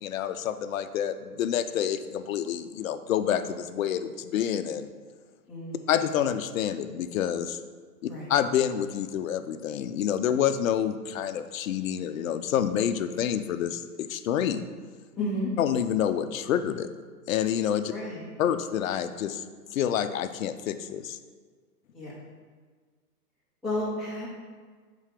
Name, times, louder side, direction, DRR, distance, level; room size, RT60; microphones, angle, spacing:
voice 1, 0.0-4.9 5.9-7.6 8.0-14.7 15.6-16.9 17.3-17.9 18.4-19.4 19.7-21.2, left 9 dB, 60° left, 10 dB, 0.5 m, -28 dB
voice 2, 5.5-5.9 8.0-8.3 15.2-15.5 17.9-18.2 21.9-22.1 23.6-24.3, left 1 dB, ahead, -9 dB, 0.6 m, -32 dB
8.0 x 3.8 x 3.7 m, 1.5 s
hypercardioid pair, 150°, 47 cm